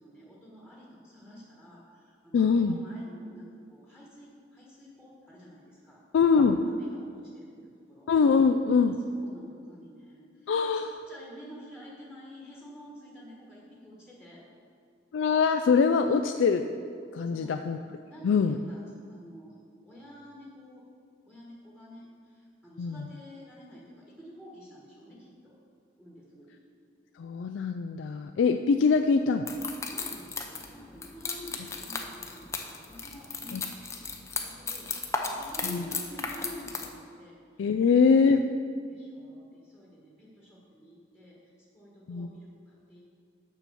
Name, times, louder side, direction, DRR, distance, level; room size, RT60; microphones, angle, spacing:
voice 1, 0.0-6.0 6.6-8.1 8.9-14.4 17.2-17.7 18.1-19.6 19.8-20.8 21.3-25.6 26.0-26.6 29.8-38.4 38.9-43.0, equal, 5° right, -5 dB, 1.4 m, -49 dB
voice 2, 2.3-2.8 6.1-6.6 8.1-9.0 10.5-11.0 15.1-16.7 17.1-17.8 18.2-18.6 22.8-23.1 27.2-29.5 33.5-33.6 35.6-35.8 37.6-38.4 42.1-42.3, left 5 dB, 90° left, 7 dB, 0.3 m, -23 dB
sound 1, 29.5-36.9, left 4 dB, 15° left, 0.6 m, -36 dB
6.9 x 5.9 x 6.9 m, 2.3 s
head